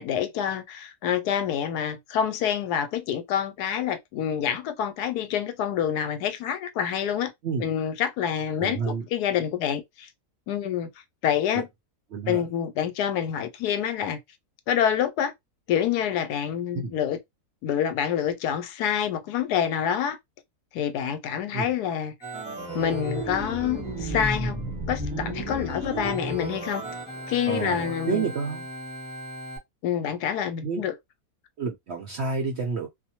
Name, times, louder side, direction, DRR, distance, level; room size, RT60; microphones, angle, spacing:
voice 1, 0.0-7.3 7.6-10.1 10.5-10.9 11.2-11.7 12.3-14.2 14.7-15.3 15.7-17.2 17.6-20.2 20.7-22.1 22.7-24.6 24.9-26.8 27.3-28.3 29.8-30.9, left 9 dB, 85° left, 1.1 m, -27 dB
voice 2, 8.6-9.1 11.5-11.6 12.1-12.4 16.7-17.0 21.5-21.7 27.5-28.7 30.6-30.8 31.6-32.9, right 5 dB, 70° right, 0.6 m, -29 dB
Organ, 22.2-29.6, right 1 dB, 5° right, 0.5 m, -33 dB
2.6 x 2.1 x 2.8 m
omnidirectional pair, 1.7 m